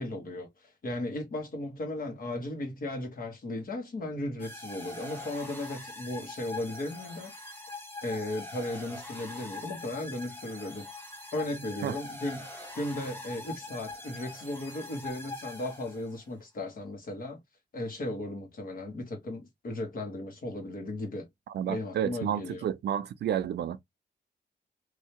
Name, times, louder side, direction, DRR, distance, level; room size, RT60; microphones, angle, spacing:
voice 1, 0.0-7.3 8.0-10.9 11.3-12.5 12.7-17.4 17.7-21.3 21.7-22.7, left 1 dB, 50° left, 1.3 m, -36 dB
sound 1, 4.4-16.2, left 2 dB, 10° left, 1.0 m, -43 dB
voice 2, 21.5-23.8, right 10 dB, 70° right, 0.4 m, -31 dB
3.3 x 2.7 x 2.8 m
wide cardioid pair, 175°, 18 cm